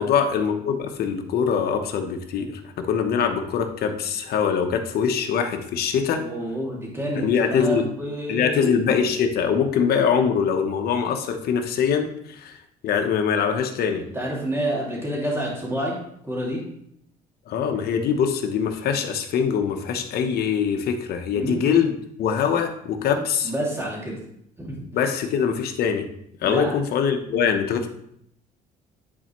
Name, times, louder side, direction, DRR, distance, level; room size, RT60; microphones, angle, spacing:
voice 1, 0.0-6.2 7.2-7.9 8.3-12.6 12.8-14.0 17.5-23.5 24.9-26.1 26.4-27.9, left 7 dB, 65° left, 5 dB, 1.0 m, -23 dB
voice 2, 6.2-8.8 14.1-15.9 16.2-16.6 21.3-21.7 23.4-24.2 24.6-24.8 26.4-26.7, right 1 dB, 15° right, -4 dB, 2.5 m, -28 dB
9.8 x 4.4 x 3.1 m, 0.72 s
cardioid pair, 110°, 17 cm